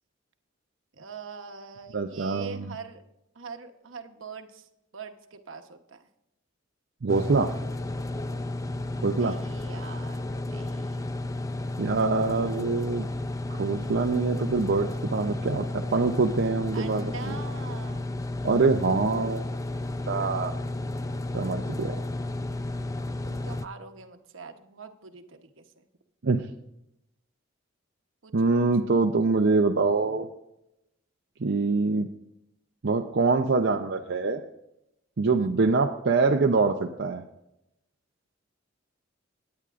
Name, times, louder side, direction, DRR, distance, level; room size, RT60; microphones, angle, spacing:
voice 1, 0.9-3.0 3.3-6.1 9.1-11.1 16.7-18.1 23.2-25.9 28.2-28.3 35.4-35.8, right 5 dB, 75° right, 6 dB, 1.0 m, -44 dB
voice 2, 1.9-2.7 7.0-7.5 9.0-9.4 11.8-13.1 13.5-17.3 18.4-19.5 20.1-20.5 21.3-22.0 26.2-26.5 28.3-30.3 31.4-32.1 32.8-34.4 35.2-37.2, right 3 dB, 60° right, 2 dB, 0.6 m, -24 dB
sound 1, 7.1-23.7, left 2 dB, 15° left, 0.4 m, -32 dB
17.5 x 9.7 x 2.5 m, 0.86 s
head